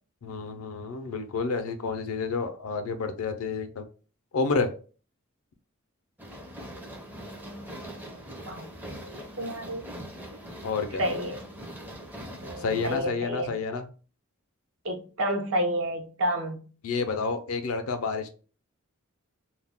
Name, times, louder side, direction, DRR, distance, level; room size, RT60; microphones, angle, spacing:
voice 1, 0.2-3.8 4.3-4.7 10.6-11.0 12.6-13.9 16.8-18.3, left 4 dB, 75° left, 7 dB, 0.5 m, -29 dB
sound 1, 6.2-13.0, equal, 10° right, 0.4 m, -42 dB
voice 2, 7.1-8.0 8.4-9.8 11.0-11.4 12.4-13.6 14.8-16.6, equal, 65° right, 4 dB, 0.6 m, -31 dB
2.3 x 2.1 x 3.4 m, 0.37 s
head